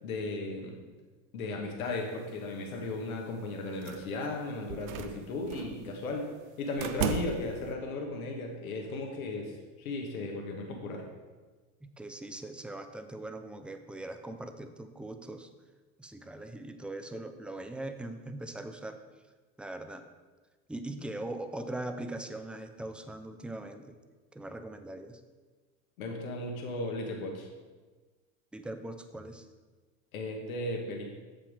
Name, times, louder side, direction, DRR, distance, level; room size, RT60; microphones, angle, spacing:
voice 1, 0.0-0.7 1.3-6.3 6.6-11.1 26.0-27.5 30.1-31.1, left 2 dB, 90° left, 1 dB, 1.4 m, -36 dB
sound 1, 3.8-4.3 4.7-5.8 6.7-7.7, right 8 dB, 80° right, 0.7 m, -35 dB
voice 2, 11.8-15.5 16.0-19.0 19.6-20.0 20.7-24.0 24.3-25.2 28.5-29.5, right 2 dB, 5° right, 7 dB, 0.4 m, -41 dB
7.1 x 5.9 x 4.9 m, 1.3 s
hypercardioid pair, 100°, 41 cm